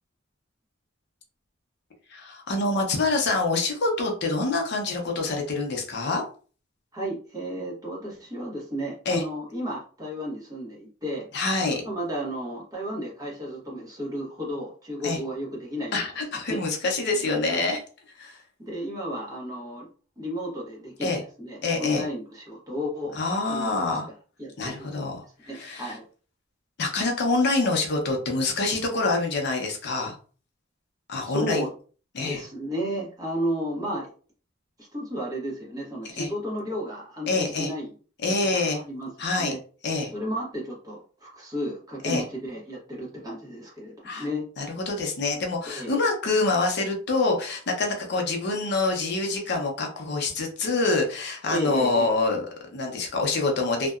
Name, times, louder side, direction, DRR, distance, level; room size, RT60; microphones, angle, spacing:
voice 1, 2.1-6.2 9.1-9.2 11.3-11.8 15.0-15.2 15.9-17.8 18.1-18.4 21.0-21.2 21.6-22.1 23.1-24.1 24.6-26.0 26.8-30.2 31.1-31.7 32.1-32.4 36.2-36.3 37.3-37.7 38.2-38.8 39.2-39.6 39.8-40.1 42.0-42.2 44.0-44.3 44.6-53.9, left 3 dB, 55° left, 2 dB, 0.6 m, -26 dB
voice 2, 6.9-11.3 11.8-16.0 16.5-16.6 17.5-17.6 18.6-19.9 20.2-23.1 23.5-23.8 24.4-24.9 25.5-26.0 31.3-31.7 32.2-34.1 34.9-37.9 38.3-38.4 38.9-39.1 39.4-39.6 40.0-44.5 45.7-46.0 51.5-52.1, equal, 20° right, -4 dB, 0.9 m, -33 dB
2.7 x 2.1 x 2.3 m, 0.40 s
head